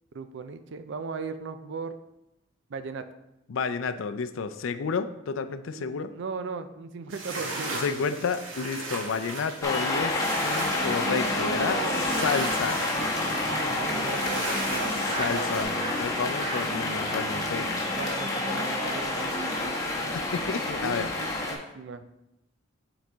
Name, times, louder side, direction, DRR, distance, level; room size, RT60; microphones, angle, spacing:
voice 1, 0.1-1.9 2.7-3.0 5.7-8.1 11.3-12.2 13.4-15.7 18.0-20.2 20.8-22.0, right 4 dB, 65° right, 10 dB, 0.4 m, -37 dB
voice 2, 3.5-6.1 7.8-11.8 12.2-12.8 15.2-15.7 16.0-17.7 20.1-21.1, left 5 dB, 80° left, 10 dB, 0.4 m, -30 dB
sound 1, 7.1-15.6, right 2 dB, 80° right, 1.2 m, -36 dB
sound 2, 9.6-21.5, left 2 dB, 15° left, 1.0 m, -29 dB
Laughter, 13.6-15.4 15.8-16.0 16.3-16.7 17.0-17.5 17.7-17.9 18.2-18.3 18.5-18.6 18.9-19.0 19.3-19.6, right 2 dB, 30° right, 0.8 m, -40 dB
7.7 x 4.1 x 3.4 m, 0.89 s
head